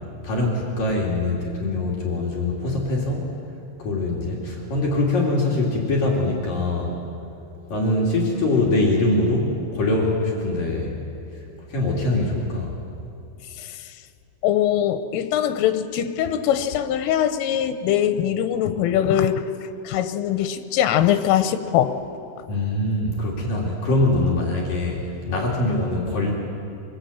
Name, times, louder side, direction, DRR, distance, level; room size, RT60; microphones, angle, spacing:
voice 1, 0.2-3.3 3.8-7.0 7.7-11.0 11.7-12.7 22.5-26.3, left 2 dB, 50° left, -3 dB, 4.2 m, -23 dB
voice 2, 14.4-19.5 19.9-21.9, left 10 dB, 90° left, 9 dB, 3.4 m, -22 dB
24.5 x 22.5 x 8.7 m, 2.7 s
omnidirectional pair, 5.8 m